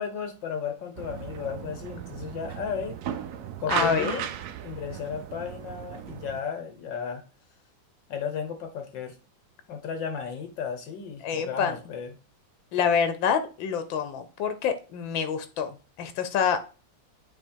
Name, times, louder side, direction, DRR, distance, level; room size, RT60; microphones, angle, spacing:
voice 1, 0.0-3.0 3.6-4.3 4.6-7.2 8.1-9.2 9.7-12.1, left 7 dB, 70° left, 7 dB, 1.9 m, -34 dB
sound 1, 1.0-6.4, right 9 dB, 70° right, 1.0 m, -36 dB
voice 2, 3.7-4.2 11.2-11.8 12.7-16.6, left 7 dB, 90° left, 10 dB, 1.5 m, -27 dB
8.8 x 3.0 x 4.5 m, 0.35 s
omnidirectional pair, 2.0 m